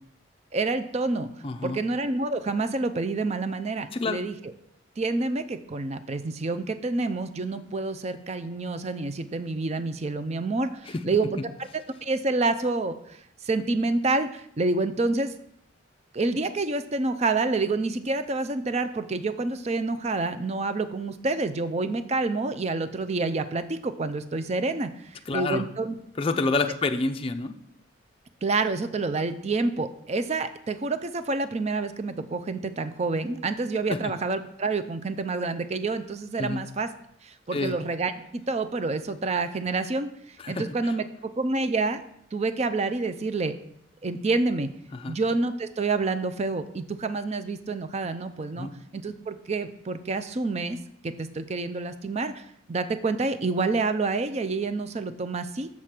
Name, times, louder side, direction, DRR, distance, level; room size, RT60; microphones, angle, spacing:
voice 1, 0.5-1.3 1.6-4.5 5.0-11.4 11.7-13.2 13.4-15.3 16.1-26.0 28.4-36.9 37.2-41.0 41.4-42.0 42.3-43.6 44.0-44.7 45.1-50.8 51.0-55.7, right 3 dB, 30° right, 10 dB, 0.4 m, -28 dB
voice 2, 1.4-1.8 3.9-4.2 10.9-11.0 25.3-25.6 26.2-27.6 33.9-34.1 36.4-36.6 37.5-37.8 40.4-40.9 44.9-45.2 48.6-48.7, left 3 dB, 30° left, 6 dB, 0.4 m, -28 dB
7.3 x 4.9 x 5.9 m, 0.72 s
head